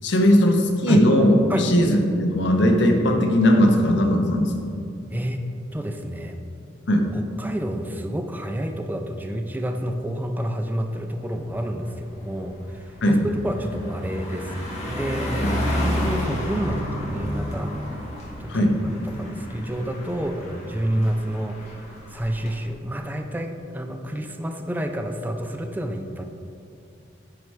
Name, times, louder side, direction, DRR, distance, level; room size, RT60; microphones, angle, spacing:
voice 1, 0.0-4.7 6.9-7.1 13.0-13.2 15.4-15.5 18.5-18.8, equal, 65° left, 3 dB, 0.8 m, -18 dB
voice 2, 1.5-1.8 5.1-5.4 5.7-6.4 7.1-13.2 13.4-14.6 14.9-17.7 18.4-26.2, right 1 dB, 10° right, 5 dB, 0.4 m, -29 dB
Car passing by, 10.9-11.2 11.6-22.5, left 1 dB, 35° left, 1.7 m, -31 dB
9.7 x 4.6 x 3.2 m, 2.6 s
head